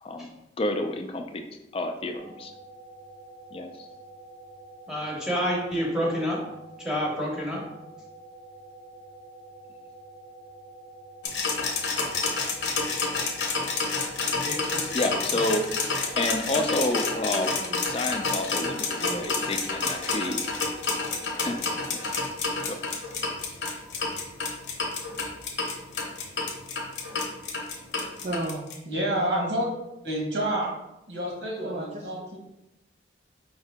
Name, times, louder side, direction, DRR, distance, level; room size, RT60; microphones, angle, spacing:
voice 1, 0.0-1.4 1.7-2.5 3.5-3.9 14.9-15.6 16.2-17.5 17.9-20.4 21.3-22.0 22.6-22.9, left 1 dB, 30° left, 5 dB, 0.4 m, -30 dB
sound 1, 2.2-22.1, right 2 dB, 70° right, 0.7 m, -48 dB
voice 2, 4.9-6.4 6.8-7.6 14.4-14.8, equal, 5° right, -3 dB, 0.8 m, -28 dB
sound 2, 11.2-28.7, left 4 dB, 90° left, 0.9 m, -29 dB
voice 3, 17.3-17.8 19.0-19.2 28.2-28.7 31.6-32.0, right 2 dB, 40° right, -2 dB, 0.4 m, -34 dB
voice 4, 28.9-29.7 30.0-30.7 31.1-32.4, right 1 dB, 85° right, -1 dB, 1.2 m, -28 dB
4.8 x 2.7 x 3.4 m, 0.91 s
head